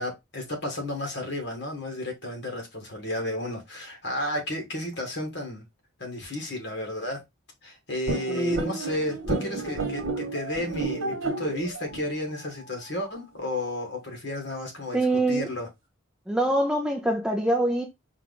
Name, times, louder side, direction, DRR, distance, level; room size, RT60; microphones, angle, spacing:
voice 1, 0.0-5.6 6.0-7.2 7.6-15.0 15.3-15.7, left 1 dB, 55° left, 1.6 m, -32 dB
sound 1, 8.1-13.2, right 3 dB, 85° right, 1.1 m, -32 dB
voice 2, 8.3-8.7 14.9-15.5 16.3-17.9, right 1 dB, 5° right, 0.5 m, -24 dB
4.5 x 2.5 x 3.7 m
head